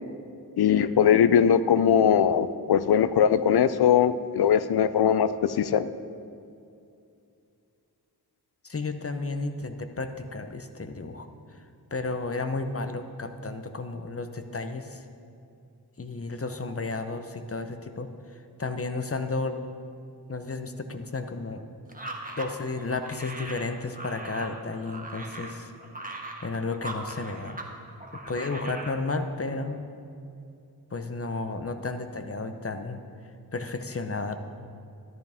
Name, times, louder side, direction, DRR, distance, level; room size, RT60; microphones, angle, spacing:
voice 1, 0.6-5.9, left 8 dB, 75° left, 14 dB, 0.5 m, -21 dB
voice 2, 8.6-11.6 11.9-15.0 16.0-19.6 20.3-21.6 22.4-25.7 26.4-27.6 28.1-29.8 30.9-33.0 33.5-34.4, left 3 dB, 35° left, 8 dB, 0.9 m, -33 dB
sound 1, 21.9-27.7 28.0-29.0, right 2 dB, 20° right, 1.4 m, -40 dB
13.0 x 10.5 x 3.6 m, 2.5 s
cardioid pair, 45°, 39 cm